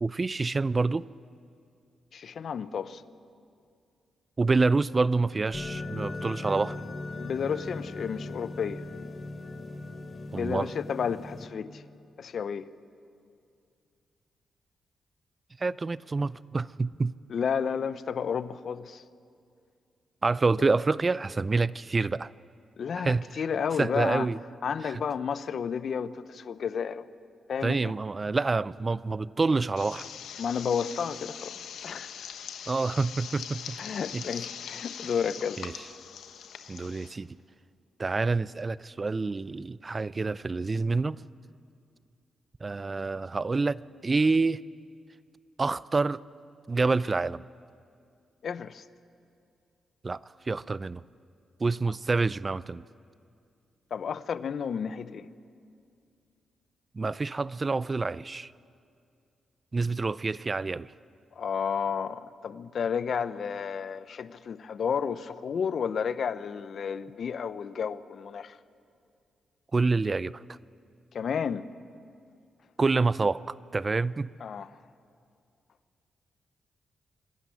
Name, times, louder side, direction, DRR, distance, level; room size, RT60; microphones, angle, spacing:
voice 1, 0.0-1.1 4.4-6.8 10.3-10.7 15.6-17.1 20.2-22.3 23.0-23.4 23.8-24.4 24.8-25.0 27.6-30.1 32.7-33.8 34.1-34.2 35.6-35.7 36.7-37.3 38.0-41.2 42.6-44.6 45.6-46.2 46.7-47.4 50.0-50.2 50.5-51.0 51.6-52.8 56.9-58.5 59.7-60.9 69.7-70.6 72.8-74.3, right 3 dB, 35° right, 0.5 m, -27 dB
voice 2, 2.1-3.0 7.2-8.8 10.3-11.8 12.2-12.6 17.3-19.0 20.6-20.7 22.8-24.3 24.6-27.0 27.5-27.8 30.4-31.5 31.8-32.1 33.8-35.6 48.4-48.8 53.9-55.3 61.4-68.6 71.1-71.7 74.4-74.7, left 7 dB, 65° left, 0.7 m, -31 dB
sound 1, 5.5-11.5, left 2 dB, 40° left, 3.3 m, -38 dB
sound 2, 29.8-37.1, left 8 dB, 80° left, 1.2 m, -42 dB
25.5 x 13.0 x 9.8 m
supercardioid pair, 55°, 0 cm